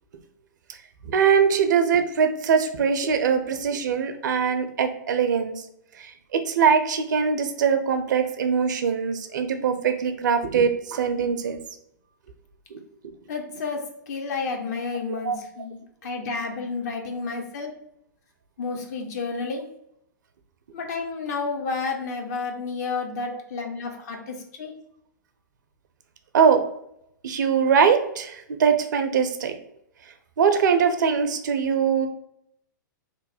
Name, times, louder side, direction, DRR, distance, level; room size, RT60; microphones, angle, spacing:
voice 1, 1.0-5.6 6.0-11.6 12.7-12.8 15.2-15.4 23.3-23.4 26.3-26.6 27.2-29.5 30.4-32.1, right 6 dB, 65° right, 7 dB, 0.5 m, -22 dB
voice 2, 13.3-17.7 18.6-19.7 20.7-24.7, left 4 dB, 55° left, 3 dB, 0.8 m, -31 dB
3.1 x 2.1 x 4.1 m, 0.76 s
figure-of-eight pair, 110°, 11 cm